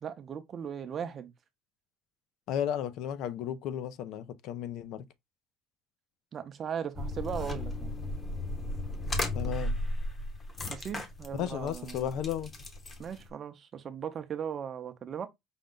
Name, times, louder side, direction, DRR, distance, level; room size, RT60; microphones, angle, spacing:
voice 1, 0.0-1.3 6.3-7.9 10.7-12.1 13.0-15.3, right 8 dB, 35° right, 0.7 m, -38 dB
voice 2, 2.5-5.0 9.3-9.7 11.3-12.5, left 10 dB, 60° left, 0.5 m, -34 dB
sound 1, 6.9-13.3, left 1 dB, 25° left, 0.9 m, -35 dB
5.2 x 2.3 x 3.7 m
cardioid pair, 145°, 0 cm